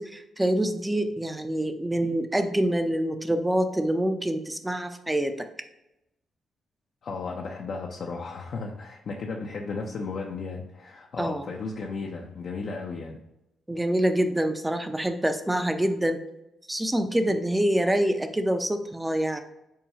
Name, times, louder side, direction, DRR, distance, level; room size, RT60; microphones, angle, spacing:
voice 1, 0.0-5.5 11.2-11.5 13.7-16.2 16.7-19.4, right 1 dB, 10° right, 7 dB, 0.5 m, -26 dB
voice 2, 7.0-13.2, left 4 dB, 65° left, -1 dB, 0.5 m, -34 dB
5.5 x 2.2 x 2.8 m, 0.89 s
supercardioid pair, 60°, 0 cm